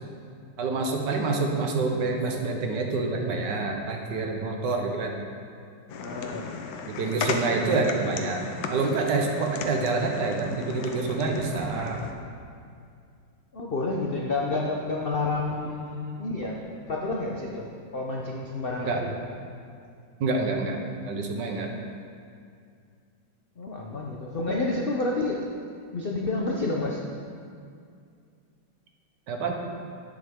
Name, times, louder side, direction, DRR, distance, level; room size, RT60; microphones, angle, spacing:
voice 1, 0.6-5.1 6.9-8.4 8.7-12.0 18.8-19.0 20.2-20.8 21.0-21.7 24.5-24.6 29.3-29.5, right 3 dB, 70° right, 2 dB, 1.5 m, -27 dB
sound 1, 5.9-12.1, left 5 dB, 90° left, 1.6 m, -35 dB
voice 2, 5.9-6.5 13.5-19.1 23.6-25.4 25.9-27.0, left 2 dB, 75° left, -1 dB, 0.5 m, -29 dB
10.5 x 8.8 x 3.6 m, 2.3 s
omnidirectional pair, 2.1 m